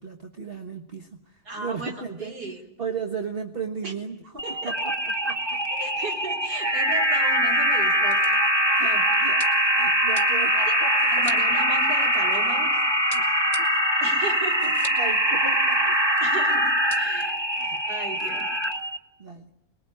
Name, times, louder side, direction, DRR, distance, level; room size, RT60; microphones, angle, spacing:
voice 1, 0.0-5.6 8.7-9.4 9.7-11.1 13.1-13.3 13.6-13.7 14.6-16.0 17.6-17.8 18.1-18.3 19.2-19.5, right 5 dB, 35° right, 5 dB, 1.6 m, -36 dB
voice 2, 1.5-2.6 3.8-3.9 4.4-4.7 5.8-8.2 8.8-9.0 10.4-10.8 11.1-12.7 14.0-14.8 16.2-16.7 17.0-17.3 17.9-18.5, right 2 dB, 70° right, 3 dB, 4.6 m, -35 dB
sound 1, 4.4-19.0, right 1 dB, 15° right, 1.5 m, -23 dB
sound 2, 6.2-6.3 6.6-6.7 7.5-12.6 13.1-15.1 15.4-15.5 15.7-16.3 16.6-17.2, left 3 dB, 25° left, 2.3 m, -44 dB
26.0 x 21.0 x 9.8 m, 0.90 s
omnidirectional pair, 1.8 m